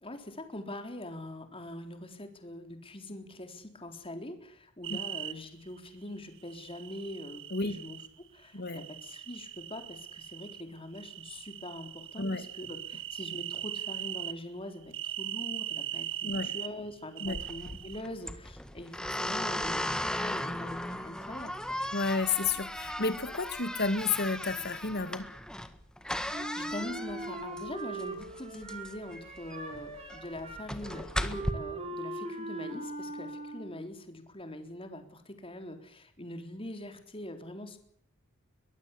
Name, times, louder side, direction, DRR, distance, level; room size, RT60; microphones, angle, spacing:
voice 1, 0.0-8.0 8.3-16.1 16.4-21.8 26.2-37.8, left 1 dB, 25° left, 7 dB, 3.8 m, -43 dB
sound 1, 4.8-5.3 6.5-8.1 8.7-10.6 10.9-14.4 14.9-16.7 17.2-18.0, right 12 dB, 60° right, 1.8 m, -40 dB
voice 2, 8.5-8.9 12.2-12.4 16.2-16.5 17.2-17.4 21.9-25.3, left 4 dB, 50° left, 11 dB, 2.8 m, -31 dB
sound 2, 17.2-31.5, left 1 dB, 5° left, 1.7 m, -37 dB
Wind instrument woodwind instrument, 26.3-33.9, right 2 dB, 30° right, 5.7 m, -41 dB
23.0 x 20.5 x 8.5 m, 0.68 s
head